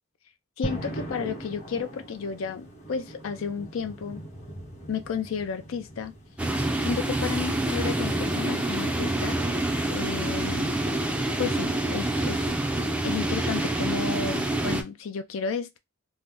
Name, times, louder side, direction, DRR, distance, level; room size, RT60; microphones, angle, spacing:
voice 1, 0.6-4.2 4.9-6.1 6.8-9.6 9.9-10.7 11.4-12.4 13.0-15.8, left 6 dB, 70° left, 0.4 m, -32 dB
sound 1, 0.6-13.5, equal, 35° left, 1.0 m, -42 dB
sound 2, 6.4-14.8, right 1 dB, 5° right, 0.4 m, -27 dB
2.7 x 2.0 x 3.5 m
head